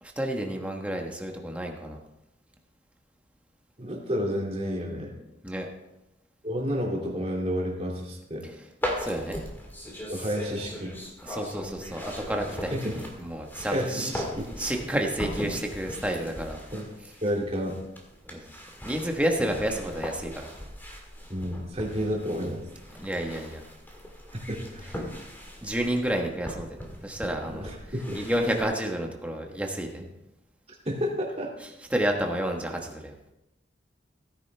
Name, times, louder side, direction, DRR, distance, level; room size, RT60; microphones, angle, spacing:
voice 1, 0.0-2.0 5.4-5.7 8.4-8.5 9.0-9.4 11.2-14.1 14.6-16.6 18.2-18.6 18.8-20.5 21.9-22.0 22.9-23.6 25.6-30.1 31.6-33.1, right 1 dB, 5° right, 2 dB, 1.3 m, -30 dB
voice 2, 3.8-5.1 6.4-8.5 10.1-10.9 12.7-13.0 13.7-14.4 16.7-16.9 17.2-17.8 21.3-22.6 24.3-24.9 27.5-28.2 30.8-31.5, equal, 35° right, -2 dB, 2.5 m, -30 dB
sound 1, 8.8-28.6, equal, 10° left, 1.8 m, -39 dB
16.5 x 10.0 x 3.4 m, 0.92 s
head